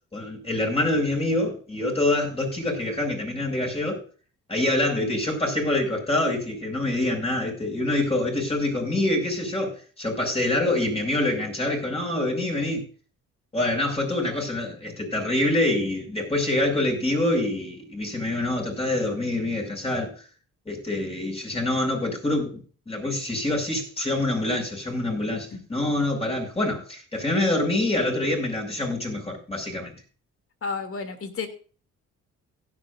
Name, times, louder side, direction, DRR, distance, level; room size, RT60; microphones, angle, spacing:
voice 1, 0.1-4.0 4.5-12.8 13.5-20.1 20.6-29.9, left 1 dB, 20° left, 6.7 m, -26 dB
voice 2, 30.6-31.5, left 5 dB, 50° left, 2.8 m, -31 dB
16.5 x 11.5 x 2.6 m
cardioid pair, 90°, 30 cm